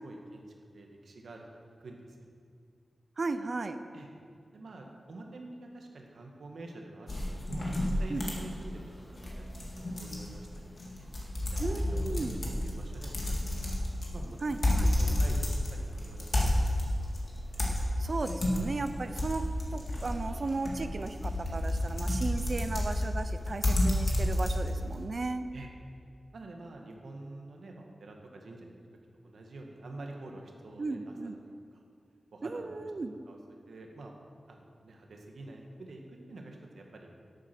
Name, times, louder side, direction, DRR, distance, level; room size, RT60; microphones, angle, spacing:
voice 1, 0.0-0.4 0.7-2.3 3.9-4.1 4.5-9.4 9.8-10.5 10.9-11.1 11.5-12.4 12.6-13.7 14.1-17.0 25.5-25.7 26.3-28.8 29.2-31.4 31.7-31.8 32.3-32.7 33.3-33.4 33.7-34.1 34.5-37.1, right 2 dB, 85° right, 1 dB, 1.6 m, -47 dB
voice 2, 3.2-3.8 8.1-8.3 11.6-12.4 14.4-14.9 18.0-19.4 19.7-25.5 30.8-31.4 32.4-33.2, right 3 dB, 45° right, 9 dB, 0.6 m, -35 dB
sound 1, 7.1-25.0, left 1 dB, 45° left, 2.1 m, -31 dB
12.5 x 8.4 x 6.0 m, 2.2 s
wide cardioid pair, 135°, 0 cm